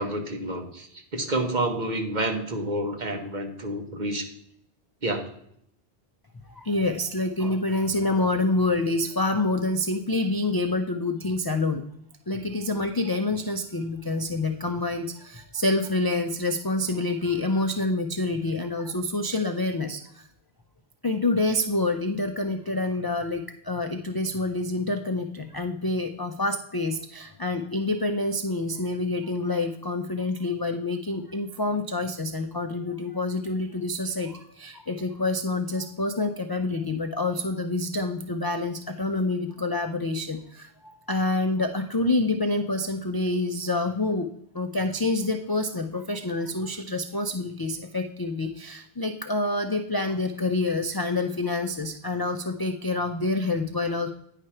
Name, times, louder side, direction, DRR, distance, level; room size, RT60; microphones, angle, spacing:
voice 1, 0.0-4.3 5.0-5.2, right 1 dB, 45° right, 4 dB, 1.2 m, -29 dB
voice 2, 6.5-11.8 12.3-20.3 21.0-44.3 44.5-54.1, left 2 dB, 35° left, 6 dB, 0.3 m, -27 dB
9.7 x 5.0 x 4.3 m, 0.72 s
omnidirectional pair, 1.1 m